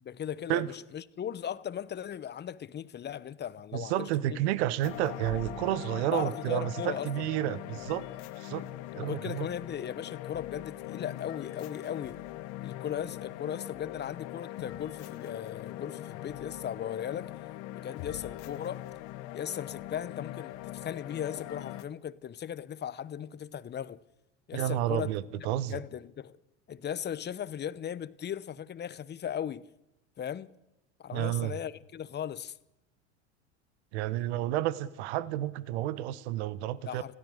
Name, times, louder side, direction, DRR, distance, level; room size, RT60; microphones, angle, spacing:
voice 1, 0.0-4.4 6.1-7.3 9.0-12.2 12.6-17.3 17.7-18.8 19.3-24.0 24.5-26.4 26.7-29.7 30.2-30.5 31.0-32.6 36.8-37.1, left 9 dB, 30° left, 1.1 m, -37 dB
voice 2, 3.7-8.1 8.4-8.7 8.9-9.5 24.5-25.8 31.1-31.6 33.9-37.1, right 13 dB, 70° right, 1.4 m, -31 dB
sound 1, 4.8-21.8, left 15 dB, 65° left, 1.7 m, -41 dB
30.0 x 16.5 x 6.7 m
hypercardioid pair, 90°, 34 cm